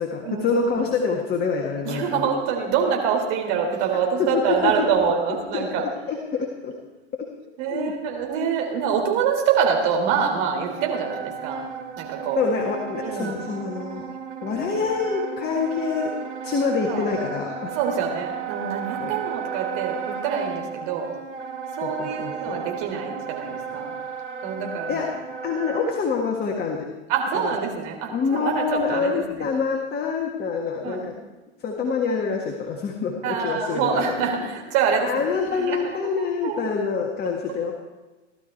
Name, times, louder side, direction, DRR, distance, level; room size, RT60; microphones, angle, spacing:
voice 1, 0.0-2.3 4.2-4.9 5.5-6.7 7.7-7.9 12.4-14.1 14.4-16.1 16.4-17.7 19.0-19.1 21.8-22.6 24.9-26.9 27.3-27.6 28.1-31.2 31.6-34.3 35.0-37.7, left 5 dB, 25° left, 1 dB, 1.7 m, -26 dB
voice 2, 1.8-5.8 7.6-11.6 12.0-12.4 13.0-13.3 16.9-17.0 17.8-21.1 21.8-23.9 24.4-25.0 27.1-29.1 30.8-31.1 33.2-35.1 35.5-36.0 36.4-36.6, right 7 dB, 50° right, 1 dB, 3.6 m, -25 dB
Wind instrument woodwind instrument, 10.5-26.0, right 6 dB, 75° right, 2.0 m, -34 dB
16.5 x 12.5 x 4.5 m, 1.2 s
figure-of-eight pair, 95°, 36 cm